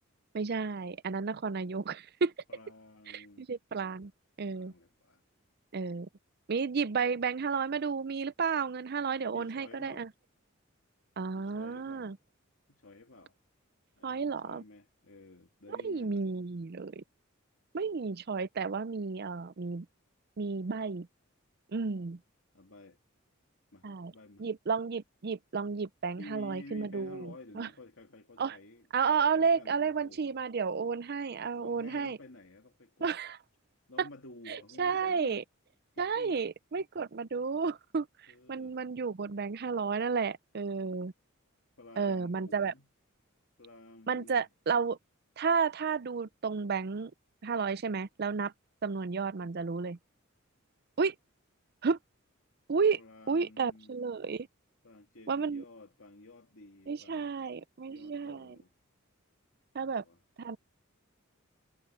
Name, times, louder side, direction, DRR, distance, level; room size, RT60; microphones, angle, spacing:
voice 1, 0.3-2.3 3.1-4.1 4.4-4.7 5.7-6.1 6.5-10.1 11.2-12.2 14.0-14.6 15.7-17.0 17.7-19.9 20.4-21.1 21.7-22.2 23.8-24.1 24.4-27.7 28.4-28.6 28.9-32.2 33.0-33.4 34.0-34.1 34.5-35.4 36.0-38.1 38.5-41.1 42.0-42.7 44.1-45.0 45.4-47.1 47.4-48.5 48.8-50.0 51.0-51.1 51.8-52.0 52.7-53.0 53.3-54.5 55.3-55.6 56.9-58.5 59.7-60.0 60.4-60.6, right 5 dB, 50° right, 0.5 m, -32 dB
voice 2, 2.5-3.5 4.5-5.2 9.3-10.1 11.4-12.1 12.7-13.4 14.0-16.3 22.5-23.0 23.7-24.5 26.2-28.9 29.3-30.4 31.6-33.1 33.9-35.4 35.9-36.4 38.3-38.8 41.8-42.9 43.6-44.4 53.0-54.0 54.8-57.3 57.9-58.7 59.8-60.2, left 2 dB, 65° left, 2.6 m, -52 dB
head